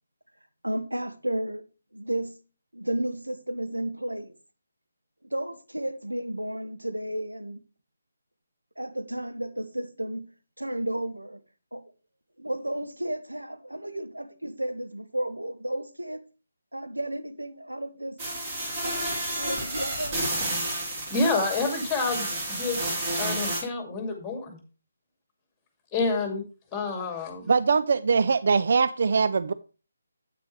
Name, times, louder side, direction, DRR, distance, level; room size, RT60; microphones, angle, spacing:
voice 1, 0.6-1.6 1.9-2.4 2.7-4.3 5.2-7.6 8.8-10.3 10.6-11.4 11.7-11.8 12.4-16.2 16.7-18.2 18.8-19.1 19.4-20.2, right 1 dB, 80° right, 1.2 m, -32 dB
sound 1, 18.2-23.6, right 1 dB, 25° right, 3.6 m, -30 dB
voice 2, 21.1-24.6 25.9-26.4 26.7-27.5, left 3 dB, 10° left, 2.3 m, -28 dB
voice 3, 27.5-29.5, right 5 dB, 45° right, 0.4 m, -22 dB
9.3 x 8.5 x 3.2 m
figure-of-eight pair, 145°, 0 cm